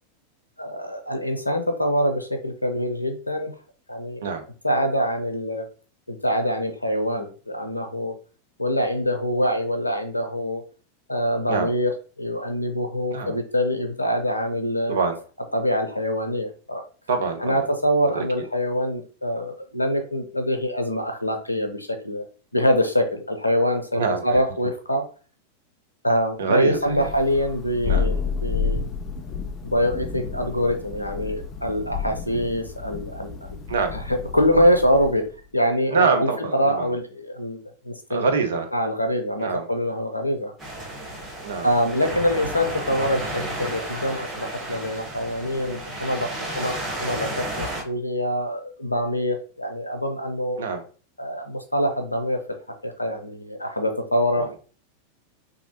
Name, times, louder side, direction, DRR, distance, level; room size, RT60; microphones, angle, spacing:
voice 1, 0.6-3.5 3.9-4.2 4.6-5.7 6.1-8.1 8.6-10.6 11.1-15.0 15.5-16.8 17.4-22.2 22.5-25.0 26.0-28.8 29.6-33.7 34.1-35.3 35.5-37.6 37.8-38.2 38.7-40.5 41.6-50.6 51.2-52.4 52.8-54.6, equal, 85° left, 6 dB, 0.5 m, -24 dB
voice 2, 14.9-15.2 17.1-17.7 18.1-18.2 23.9-24.4 26.4-27.1 27.9-28.1 33.7-34.0 35.9-36.9 38.1-38.7 39.4-39.7 41.4-41.7 50.6-50.8 54.4-54.6, right 5 dB, 65° right, 6 dB, 0.5 m, -25 dB
Thunder, 26.8-35.3, left 5 dB, 30° left, 0.5 m, -30 dB
sound 1, 40.6-47.8, right 1 dB, 20° right, 1.5 m, -32 dB
3.1 x 2.6 x 2.7 m, 0.38 s
figure-of-eight pair, 90°, 0 cm